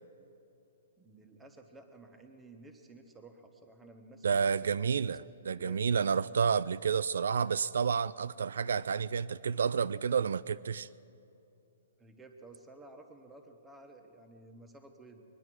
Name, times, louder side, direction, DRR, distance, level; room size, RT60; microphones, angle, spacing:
voice 1, 1.0-5.1 5.5-6.0 12.0-15.2, right 2 dB, 10° right, 1.1 m, -54 dB
voice 2, 4.2-10.9, right 6 dB, 80° right, 0.3 m, -30 dB
22.5 x 9.8 x 6.2 m
hypercardioid pair, 165°, 0 cm